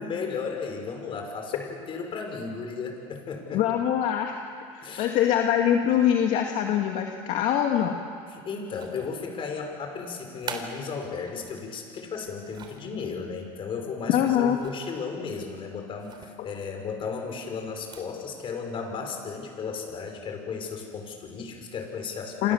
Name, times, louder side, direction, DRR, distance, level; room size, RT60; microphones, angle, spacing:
voice 1, 0.0-3.6 4.8-5.1 8.3-22.4, left 5 dB, 40° left, 3 dB, 6.0 m, -35 dB
voice 2, 3.5-4.4 4.7-8.0 14.1-14.6 22.4-22.5, left 10 dB, 65° left, 2 dB, 2.1 m, -23 dB
sound 1, 8.6-9.3 10.1-11.6 12.2-12.9 14.5-15.0 15.3-15.4 16.0-16.4 17.7-18.2, right 5 dB, 35° right, 3.6 m, -42 dB
28.0 x 27.0 x 7.3 m, 2.3 s
supercardioid pair, 115°, 13 cm